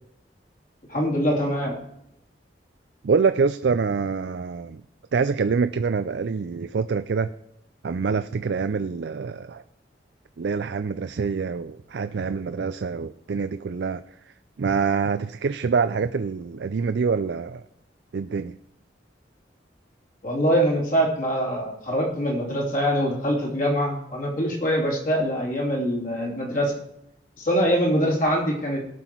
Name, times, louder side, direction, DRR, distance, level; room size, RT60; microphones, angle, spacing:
voice 1, 0.9-1.8 20.2-26.7 27.4-29.0, equal, 50° left, -2 dB, 2.9 m, -24 dB
voice 2, 3.0-4.8 5.1-7.3 7.8-9.6 10.4-14.0 14.6-17.6 18.1-18.5, right 5 dB, 70° right, 11 dB, 0.4 m, -25 dB
18.0 x 6.0 x 4.5 m, 0.78 s
head